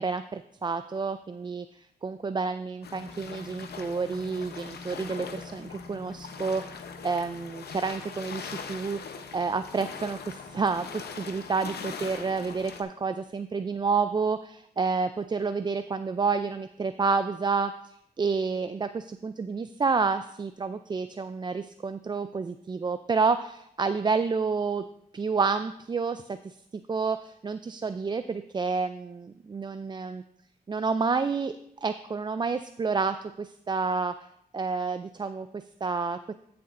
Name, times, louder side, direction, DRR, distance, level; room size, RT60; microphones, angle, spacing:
voice 1, 0.0-9.0 9.3-24.8 25.1-26.6 26.9-30.2 30.7-34.3 34.5-36.3, right 4 dB, 30° right, 10 dB, 0.3 m, -29 dB
sound 1, 2.8-12.8, left 5 dB, 85° left, 0.8 m, -41 dB
13.0 x 6.8 x 2.6 m, 0.72 s
cardioid pair, 70°, 16 cm